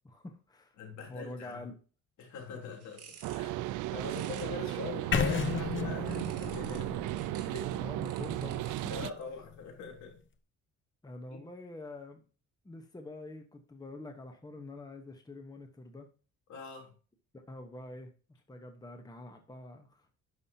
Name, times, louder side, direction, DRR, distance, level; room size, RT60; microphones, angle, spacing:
voice 1, 0.0-0.7 1.1-1.8 7.7-8.8 11.0-12.2 12.6-16.1 17.3-18.1 18.5-20.1, left 2 dB, 15° left, 5 dB, 1.1 m, -46 dB
voice 2, 0.8-1.7 2.2-3.5 3.9-7.1 7.4-7.7 8.9-10.2 11.3-11.4 16.5-16.9, left 4 dB, 70° left, 1 dB, 3.4 m, -42 dB
sound 1, 2.6-5.6 6.1-9.2, right 7 dB, 55° right, 2.6 m, -54 dB
sound 2, 3.2-9.1, right 16 dB, 80° right, 0.5 m, -35 dB
sound 3, 5.1-9.1, left 7 dB, 40° left, 1.0 m, -34 dB
11.0 x 6.3 x 2.8 m, 0.37 s
cardioid pair, 125°, 30 cm